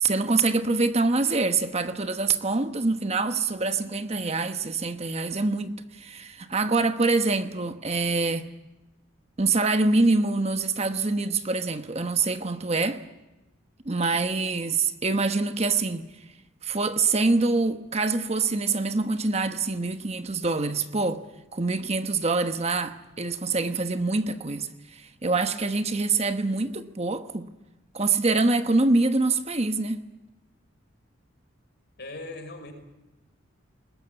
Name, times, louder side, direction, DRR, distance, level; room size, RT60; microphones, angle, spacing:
voice 1, 0.0-8.5 9.4-13.0 13.8-16.0 16.6-21.2 21.5-27.5 27.9-30.1, right 3 dB, 30° right, 1.1 m, -25 dB
voice 2, 32.0-32.7, left 2 dB, 55° left, 5.8 m, -39 dB
21.0 x 20.5 x 9.7 m
head